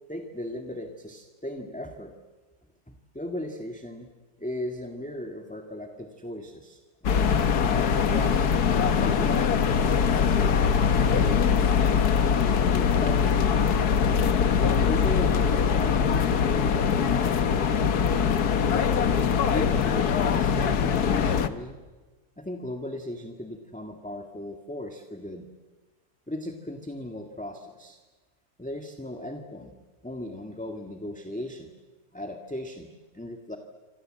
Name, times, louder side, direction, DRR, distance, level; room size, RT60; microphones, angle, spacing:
voice 1, 0.1-2.1 2.9-4.1 4.4-13.5 14.6-18.1 18.5-19.0 19.5-21.8 22.4-25.5 26.3-28.0 28.6-29.7 30.0-31.7 32.1-32.9 33.1-33.6, left 1 dB, 5° left, 4 dB, 1.8 m, -37 dB
sound 1, 7.0-21.5, left 6 dB, 75° left, 1.7 m, -22 dB
28.0 x 26.0 x 7.7 m, 1.3 s
omnidirectional pair, 1.7 m